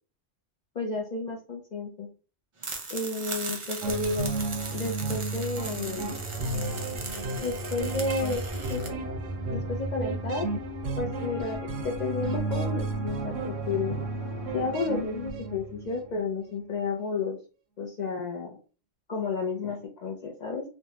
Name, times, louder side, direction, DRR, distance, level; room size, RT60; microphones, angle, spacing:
voice 1, 0.8-2.1 2.9-4.3 4.7-6.1 7.4-9.0 9.5-10.5 11.0-11.6 11.8-14.0 14.5-17.4 17.8-18.6 19.1-20.6, left 4 dB, 65° left, 1 dB, 0.4 m, -32 dB
sound 1, 2.6-8.9, right 3 dB, 45° right, 0.4 m, -38 dB
sound 2, 3.8-16.1, right 4 dB, 90° right, 0.9 m, -33 dB
sound 3, 5.5-14.8, left 4 dB, 90° left, 1.0 m, -41 dB
3.2 x 2.1 x 2.8 m, 0.37 s
omnidirectional pair, 1.2 m